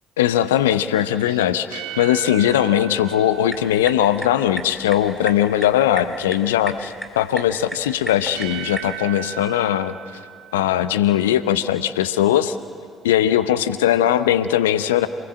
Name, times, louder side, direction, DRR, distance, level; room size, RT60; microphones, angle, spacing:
voice 1, 0.2-9.9 10.5-12.6 13.0-15.1, left 11 dB, 75° left, 13 dB, 0.7 m, -19 dB
sound 1, 1.2-4.6 7.8-11.3, right 14 dB, 70° right, 1.1 m, -37 dB
sound 2, 3.3-9.0, right 1 dB, 10° right, 2.8 m, -36 dB
27.0 x 20.5 x 7.6 m, 2.3 s
figure-of-eight pair, 50°, 0 cm